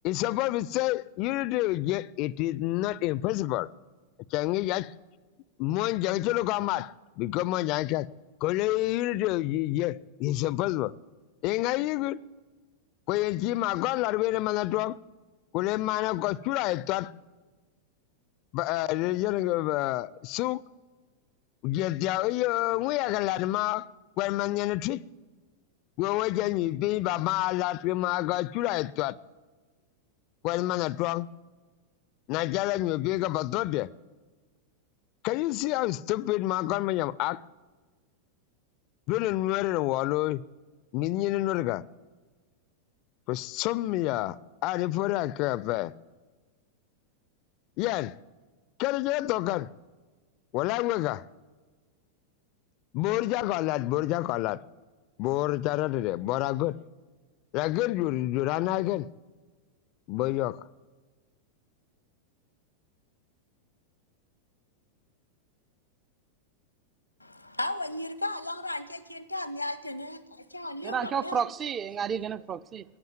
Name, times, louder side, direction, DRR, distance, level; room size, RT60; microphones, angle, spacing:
voice 1, 0.0-3.7 4.3-4.9 5.6-8.1 8.4-10.9 11.4-12.2 13.1-15.0 15.5-17.1 18.5-20.6 21.6-23.9 24.2-25.0 26.0-29.1 30.4-31.3 32.3-33.9 35.2-37.4 39.1-40.4 40.9-41.8 43.3-45.9 47.8-48.1 48.8-49.7 50.5-51.2 52.9-54.6 55.2-56.8 57.5-59.1 60.1-60.6, left 16 dB, 40° left, 0.4 m, -28 dB
voice 2, 67.2-71.4, left 1 dB, 85° left, 0.9 m, -35 dB
voice 3, 70.8-72.8, right 7 dB, 25° right, 0.5 m, -31 dB
15.0 x 9.2 x 9.2 m
figure-of-eight pair, 90°, 0 cm